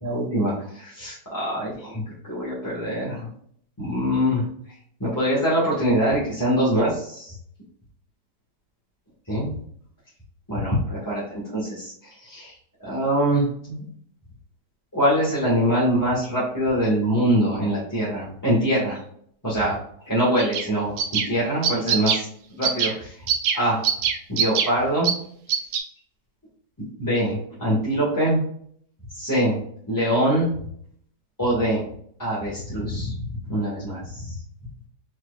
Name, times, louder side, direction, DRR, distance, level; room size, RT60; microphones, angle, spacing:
voice 1, 0.0-3.3 3.8-4.5 5.0-7.3 9.3-9.5 10.5-12.5 12.8-13.9 14.9-19.0 19.4-19.8 20.1-23.1 23.5-23.8 24.3-25.1 27.0-28.4 29.1-29.6 29.9-30.5 31.4-31.8 32.2-33.1 33.5-34.3, equal, 10° left, -9 dB, 1.4 m, -24 dB
sound 1, 20.4-20.6 21.0-21.3 21.6-22.2 22.6-22.9 23.3-23.6 23.8-24.7 25.0-25.1 25.5-25.8, right 8 dB, 90° right, 1.4 m, -22 dB
4.7 x 4.3 x 2.4 m, 0.63 s
omnidirectional pair, 1.9 m